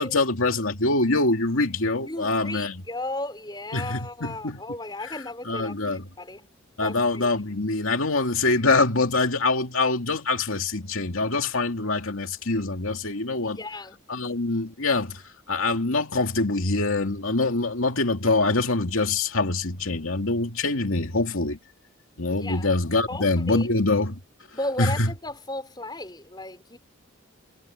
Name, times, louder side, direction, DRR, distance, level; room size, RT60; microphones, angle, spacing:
voice 1, 0.0-2.8 3.7-4.6 5.0-5.1 5.5-6.1 6.8-13.6 14.1-15.2 15.5-21.6 22.2-24.2 24.8-25.1, left 3 dB, 90° left, 2.6 m, -24 dB
voice 2, 2.0-6.5 6.8-7.3 13.4-14.0 22.3-22.7 23.1-23.7 24.5-26.8, left 2 dB, 20° left, 5.8 m, -35 dB
head